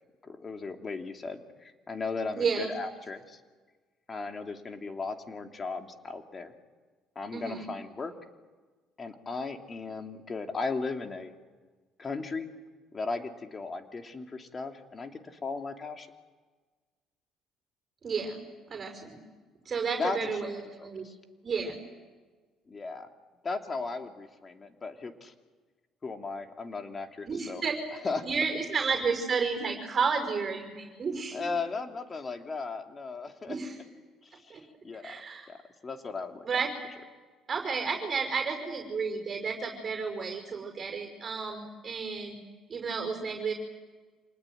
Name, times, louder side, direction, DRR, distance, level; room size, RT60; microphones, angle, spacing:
voice 1, 0.2-3.4 4.1-6.5 7.1-8.1 9.0-11.3 12.0-12.5 12.9-16.1 20.0-20.5 20.8-21.1 22.7-23.1 23.4-25.3 26.0-27.6 28.0-28.2 31.3-33.6 34.2-35.1 35.5-35.6 35.8-36.4, left 4 dB, 35° left, 4 dB, 2.9 m, -36 dB
voice 2, 2.4-2.7 7.3-7.7 18.0-19.2 19.7-21.0 21.4-21.8 27.2-27.8 28.2-31.5 33.5-33.8 34.5-34.6 35.0-35.5 36.4-36.7 37.5-42.4 42.7-43.5, right 5 dB, 40° right, 3 dB, 5.6 m, -32 dB
27.0 x 20.0 x 9.3 m, 1.4 s
supercardioid pair, 75°, 0 cm